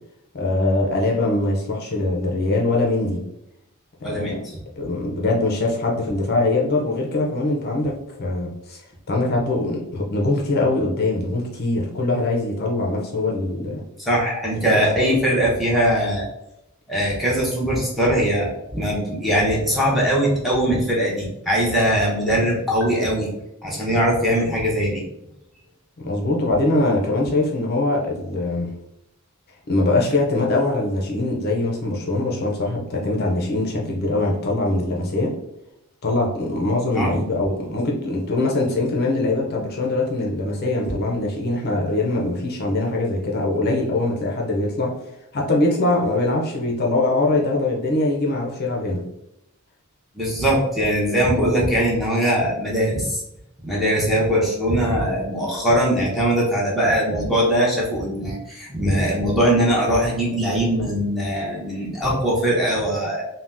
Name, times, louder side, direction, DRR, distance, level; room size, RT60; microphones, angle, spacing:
voice 1, 0.3-3.2 4.0-4.4 4.8-7.9 8.2-8.8 9.1-13.8 14.7-15.2 26.0-28.7 29.7-35.3 36.0-44.9 45.3-49.0, left 2 dB, 45° left, -1 dB, 0.5 m, -22 dB
voice 2, 4.0-4.4 14.0-16.3 16.9-23.3 23.6-25.0 36.9-37.1 50.1-53.2 53.6-63.2, equal, ahead, -5 dB, 0.7 m, -21 dB
2.7 x 2.1 x 3.3 m, 0.83 s
head